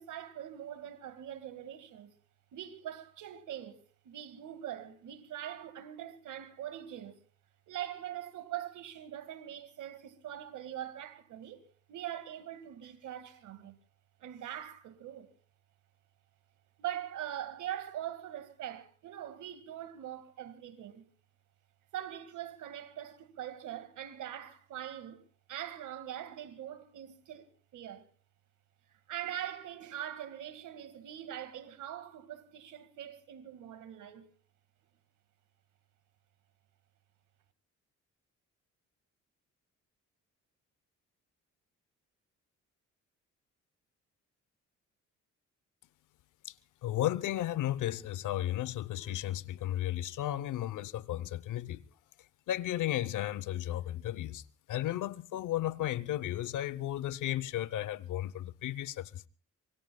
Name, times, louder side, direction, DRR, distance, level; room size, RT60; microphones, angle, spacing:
voice 1, 0.0-2.1 2.5-7.2 7.7-11.6 11.9-13.8 14.2-15.3 16.8-21.1 21.9-28.1 29.1-34.3, right 11 dB, 80° right, 2.0 m, -42 dB
voice 2, 46.8-51.8 52.5-54.4 54.7-59.3, left 13 dB, 80° left, 0.9 m, -34 dB
26.0 x 23.5 x 2.3 m
cardioid pair, 90°, 30 cm